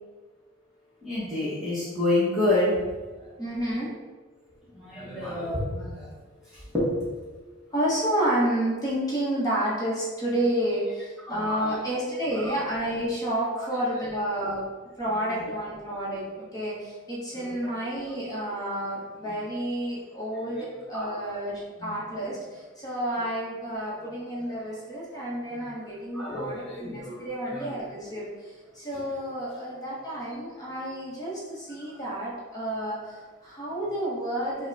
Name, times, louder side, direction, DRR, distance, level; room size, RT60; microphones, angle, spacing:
voice 1, 1.0-2.9 4.7-6.1 6.7-7.1 11.3-11.8 12.4-12.5 13.6-13.7 15.2-15.4 17.4-17.5 20.9-21.3 21.8-21.9 26.1-27.2 27.5-27.7, left 1 dB, ahead, -12 dB, 1.0 m, -28 dB
voice 2, 3.4-3.9 7.7-14.6 15.0-34.7, right 1 dB, 15° left, -7 dB, 1.2 m, -30 dB
5.7 x 2.3 x 4.0 m, 1.3 s
head